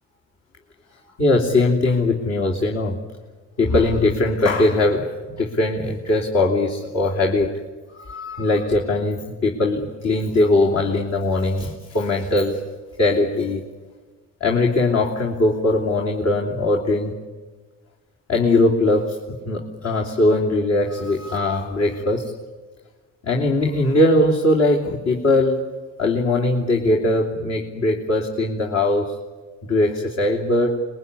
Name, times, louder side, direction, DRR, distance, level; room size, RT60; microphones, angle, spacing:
voice 1, 1.2-3.0 3.6-7.6 8.1-12.6 13.0-13.6 14.4-17.2 18.3-22.3 23.2-25.6 26.0-29.1 29.7-30.8, left 2 dB, 60° left, 0 dB, 3.2 m, -20 dB
25.5 x 21.5 x 9.8 m, 1.4 s
cardioid pair, 90°, 30 cm